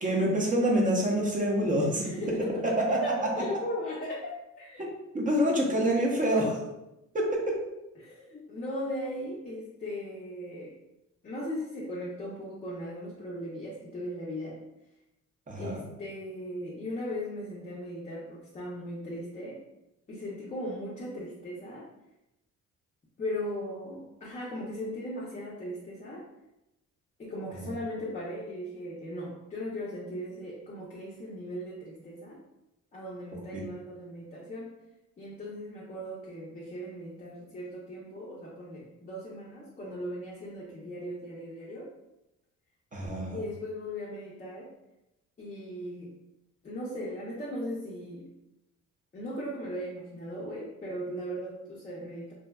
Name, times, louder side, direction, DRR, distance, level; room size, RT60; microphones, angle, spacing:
voice 1, 0.0-2.1 4.8-4.9 5.1-6.6 7.1-7.6 15.5-15.8 27.6-27.7 42.9-43.4, equal, 25° right, -2 dB, 0.7 m, -26 dB
voice 2, 2.0-4.8 8.0-10.7 11.2-14.6 15.6-19.6 20.1-21.9 23.2-26.2 27.2-32.4 32.9-34.7 35.2-41.9 43.3-44.7 45.4-46.2 46.6-48.3 49.1-52.3, equal, 25° left, -5 dB, 0.5 m, -38 dB
2.6 x 2.2 x 2.2 m, 0.92 s
cardioid pair, 90°, 30 cm